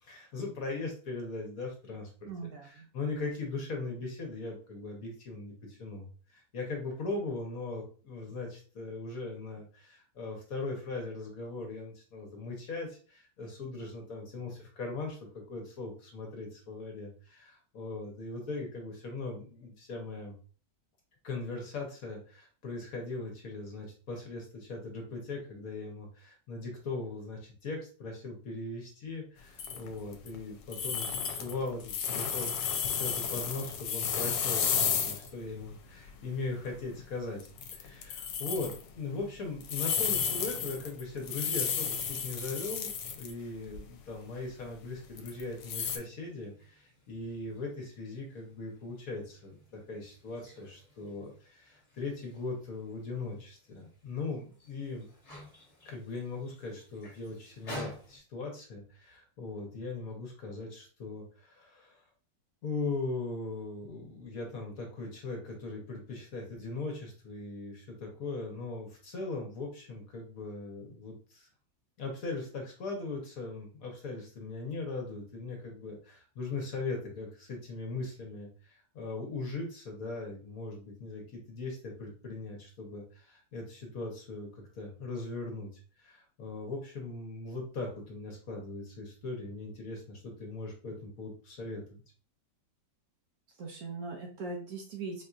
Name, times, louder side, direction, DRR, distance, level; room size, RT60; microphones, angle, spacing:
voice 1, 0.0-2.3 2.6-15.2 15.5-20.3 21.2-37.4 37.7-55.1 55.8-62.0 62.6-71.5 72.0-85.7 86.0-92.0, left 3 dB, 60° left, 1 dB, 1.1 m, -39 dB
voice 2, 2.3-2.9 39.1-39.2 93.6-95.2, right 3 dB, 65° right, 1 dB, 1.0 m, -40 dB
sound 1, 29.6-30.4 30.7-35.3 35.6-35.7 36.3-36.4 36.7-37.0 37.4-38.8 39.6-43.3 43.7-43.8 45.2-46.0, left 7 dB, 80° left, 1.2 m, -32 dB
sound 2, 44.5-58.2, left 1 dB, 30° left, 1.2 m, -52 dB
4.3 x 2.6 x 2.3 m, 0.39 s
omnidirectional pair, 2.0 m